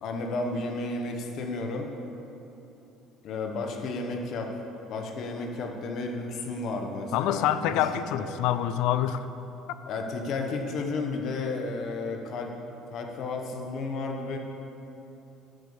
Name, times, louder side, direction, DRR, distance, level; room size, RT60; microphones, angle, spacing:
voice 1, 0.0-1.9 3.2-4.5 4.9-7.9 8.2-8.3 9.9-12.5 12.9-14.4, left 3 dB, 45° left, 3 dB, 1.2 m, -32 dB
voice 2, 7.1-9.3, left 11 dB, 70° left, 12 dB, 0.5 m, -26 dB
10.0 x 7.9 x 7.0 m, 3.0 s
cardioid pair, 175°, 0 cm